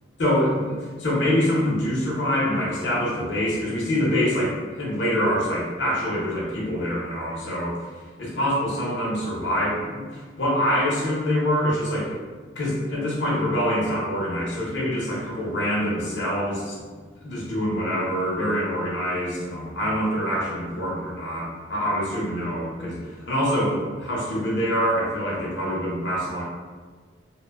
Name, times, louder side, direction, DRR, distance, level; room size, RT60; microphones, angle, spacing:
voice 1, 0.2-12.1 12.5-16.9 17.2-26.4, equal, 70° left, -6 dB, 0.7 m, -25 dB
2.5 x 2.1 x 2.3 m, 1.5 s
head